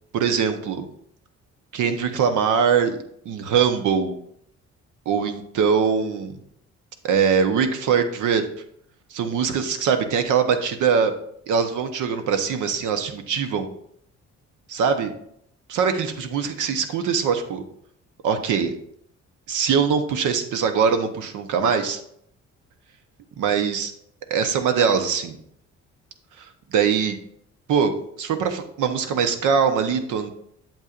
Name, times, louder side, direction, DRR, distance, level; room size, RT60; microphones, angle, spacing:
voice 1, 0.1-0.9 1.7-3.0 3.2-4.1 5.1-6.4 7.0-8.4 9.1-11.1 11.5-13.7 14.7-15.1 15.7-17.6 18.2-18.7 19.5-22.0 23.4-23.9 24.3-25.4 26.4-26.5 26.7-27.2 27.7-27.9 28.2-30.3, right 6 dB, 80° right, 8 dB, 0.9 m, -22 dB
8.1 x 7.3 x 2.5 m, 0.69 s
cardioid pair, 90°, 30 cm